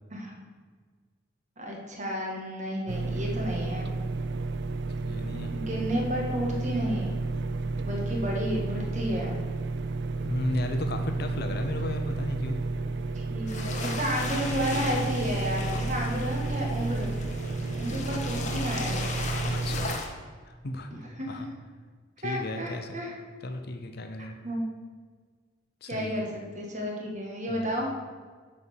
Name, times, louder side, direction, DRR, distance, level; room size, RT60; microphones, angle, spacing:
voice 1, 1.6-3.9 5.5-7.2 7.8-9.4 13.1-17.1 17.7-19.0 21.2-21.5 22.2-23.1 24.4-24.6 25.8-27.9, equal, 40° right, 0 dB, 1.5 m, -32 dB
sound 1, 2.9-20.0, right 3 dB, 60° right, 0.4 m, -31 dB
voice 2, 5.0-5.5 10.2-12.6 19.4-20.0 20.5-20.9 21.3-21.5 22.2-23.0 23.4-24.4 25.8-26.2 27.5-27.7, left 1 dB, 55° left, 6 dB, 0.7 m, -34 dB
sound 2, 13.5-20.1, left 2 dB, 35° left, 1.0 m, -36 dB
8.6 x 4.3 x 6.9 m, 1.5 s
head